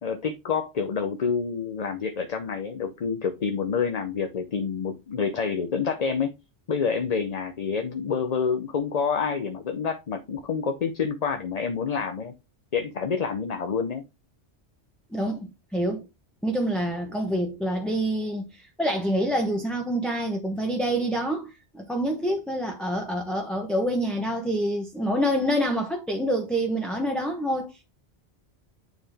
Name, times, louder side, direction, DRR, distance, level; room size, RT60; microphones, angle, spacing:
voice 1, 0.0-6.3 6.7-12.3 12.7-14.0, left 6 dB, 45° left, 0.7 m, -28 dB
voice 2, 15.1-16.1 16.4-27.7, equal, ahead, 0.8 m, -27 dB
9.3 x 3.7 x 3.4 m
omnidirectional pair, 1.1 m